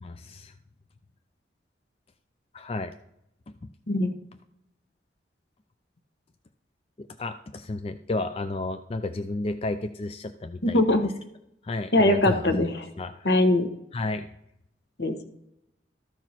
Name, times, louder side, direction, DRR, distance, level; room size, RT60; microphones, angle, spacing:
voice 1, 0.0-0.5 2.5-2.9 3.6-3.7 7.0-10.8 11.6-12.5 13.0-13.3 13.9-14.3, left 2 dB, 35° left, 8 dB, 0.4 m, -32 dB
voice 2, 10.6-11.1 11.9-12.9 13.2-13.7 15.0-15.3, left 1 dB, 65° left, 7 dB, 1.2 m, -22 dB
13.5 x 4.6 x 5.8 m, 0.81 s
head